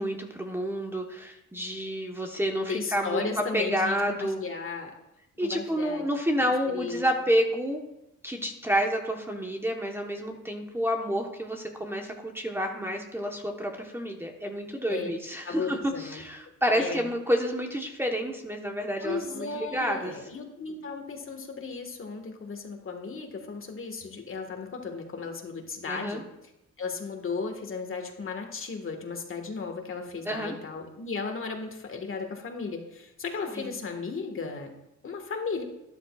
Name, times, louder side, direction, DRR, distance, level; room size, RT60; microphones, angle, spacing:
voice 1, 0.0-4.4 5.4-7.8 8.2-20.1 25.9-26.2 30.2-30.6 33.5-33.7, equal, 10° right, 2 dB, 1.2 m, -29 dB
voice 2, 2.7-4.9 5.4-6.0 6.3-7.0 14.9-15.1 15.5-16.2 16.7-17.1 19.0-26.2 26.8-34.7 35.0-35.6, left 4 dB, 45° left, 4 dB, 1.7 m, -35 dB
12.5 x 11.0 x 2.4 m, 0.89 s
cardioid pair, 90°, 30 cm